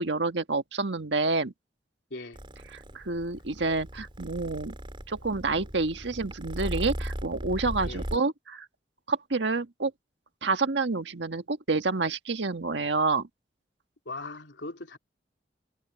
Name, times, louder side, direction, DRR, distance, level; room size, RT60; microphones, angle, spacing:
voice 1, 0.0-1.5 2.7-4.7 5.1-8.7 9.1-9.9 10.4-13.3, right 3 dB, 80° right, 1.5 m, -28 dB
Purr, 2.3-8.2, equal, 30° right, 3.3 m, -37 dB
voice 2, 14.0-15.0, left 2 dB, 80° left, 3.2 m, -39 dB
head